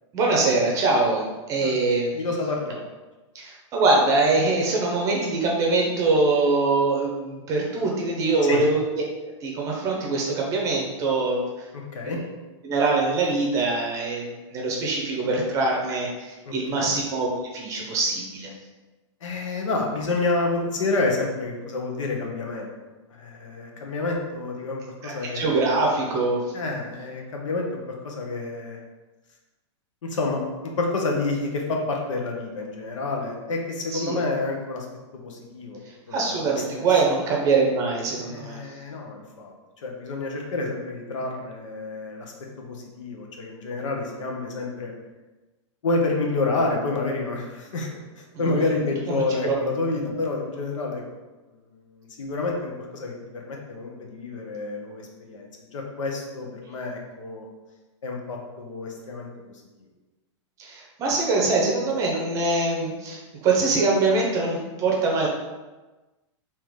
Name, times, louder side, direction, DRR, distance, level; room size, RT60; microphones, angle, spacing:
voice 1, 0.1-2.3 3.3-9.0 9.4-11.7 12.0-12.2 12.6-18.5 25.0-26.4 33.9-34.2 36.1-38.6 48.3-48.6 49.1-49.5 60.6-65.3, right 3 dB, 20° right, -1 dB, 0.7 m, -23 dB
voice 2, 2.1-2.9 8.4-8.6 11.7-12.2 16.5-16.9 19.2-22.7 23.2-25.8 26.5-28.8 30.0-30.4 30.8-34.8 35.1-35.8 36.1-36.8 38.3-39.5 39.8-44.9 45.8-47.9 48.2-51.0 51.8-57.5 58.0-59.3, left 3 dB, 85° left, 0 dB, 1.1 m, -29 dB
3.8 x 2.9 x 4.8 m, 1.2 s
supercardioid pair, 170°, 16 cm